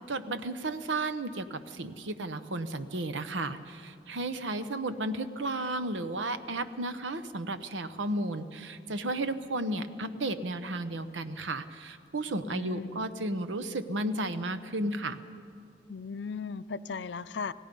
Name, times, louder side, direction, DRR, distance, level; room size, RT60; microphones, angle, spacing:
voice 1, 0.1-15.2, right 2 dB, 90° right, 11 dB, 0.9 m, -33 dB
voice 2, 12.5-13.1 15.9-17.5, left 5 dB, 70° left, 14 dB, 0.5 m, -37 dB
28.0 x 18.0 x 5.4 m, 2.3 s
head